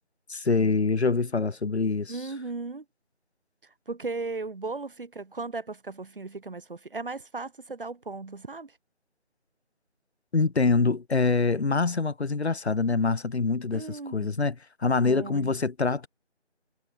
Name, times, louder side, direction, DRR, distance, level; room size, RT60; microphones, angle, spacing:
voice 1, 0.3-2.1 10.3-14.5 14.8-16.1, left 4 dB, 65° left, 1.3 m, -25 dB
voice 2, 2.1-2.8 3.9-8.8 13.7-14.4 15.0-15.6, right 3 dB, 50° right, 5.0 m, -36 dB
figure-of-eight pair, 170°, 35 cm